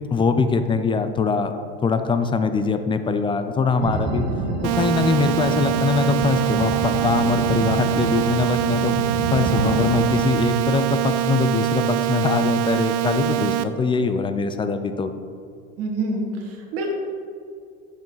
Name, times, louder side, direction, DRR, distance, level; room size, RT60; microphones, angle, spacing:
voice 1, 0.1-1.5 1.8-4.3 4.6-9.0 9.3-15.1, left 4 dB, 15° left, 9 dB, 0.4 m, -22 dB
sound 1, 3.8-10.2, right 2 dB, 35° right, 2.1 m, -28 dB
sound 2, 4.6-13.6, right 14 dB, 85° right, 0.6 m, -23 dB
voice 2, 15.8-16.9, right 2 dB, 55° right, 1 dB, 1.9 m, -27 dB
10.0 x 7.1 x 4.0 m, 2.3 s
supercardioid pair, 130°, 30 cm